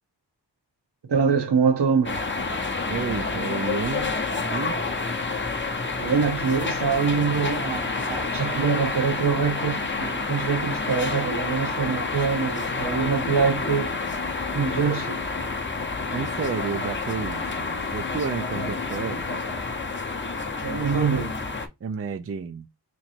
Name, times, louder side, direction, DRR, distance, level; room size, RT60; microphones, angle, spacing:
voice 1, 1.0-2.2 6.0-14.0 14.5-15.2 20.6-21.4, right 6 dB, 70° right, 0.9 m, -24 dB
sound 1, 2.0-21.7, left 3 dB, 25° left, 0.6 m, -29 dB
voice 2, 2.9-4.2 4.5-4.8 16.1-19.5 21.8-22.7, right 6 dB, 35° right, 0.4 m, -31 dB
3.0 x 2.6 x 4.2 m
wide cardioid pair, 75°, 43 cm